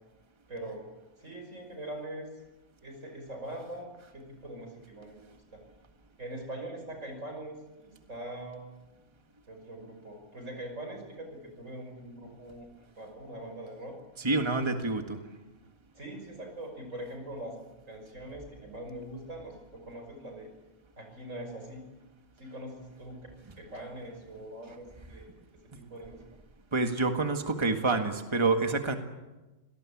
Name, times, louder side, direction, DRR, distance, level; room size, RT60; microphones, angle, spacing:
voice 1, 0.5-0.8 1.2-2.3 2.8-5.6 6.2-8.6 9.5-14.0 15.9-17.6 17.9-20.5 21.0-21.8 22.4-23.2 23.6-25.3 25.7-26.2, right 1 dB, 85° right, 5 dB, 6.2 m, -42 dB
voice 2, 14.2-15.2 26.7-29.0, right 3 dB, 20° right, 5 dB, 1.8 m, -27 dB
26.5 x 19.0 x 8.6 m, 1.1 s
omnidirectional pair, 1.3 m